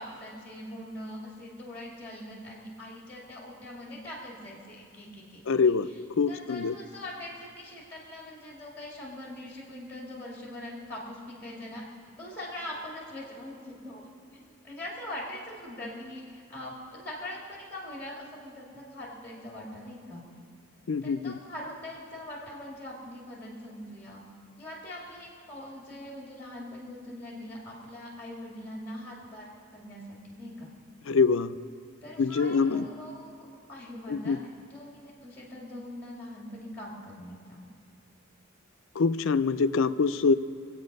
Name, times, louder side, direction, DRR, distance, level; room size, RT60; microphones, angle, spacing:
voice 1, 0.0-5.6 5.9-6.0 6.3-11.8 12.2-20.2 21.0-24.2 24.6-30.7 32.0-37.6, left 1 dB, 10° left, -3 dB, 2.2 m, -42 dB
voice 2, 5.5-5.9 6.2-6.7 20.9-21.4 31.1-31.6 32.2-32.9 34.1-34.4 39.0-40.3, left 5 dB, 70° left, 12 dB, 0.5 m, -24 dB
24.5 x 8.3 x 5.3 m, 2.5 s
head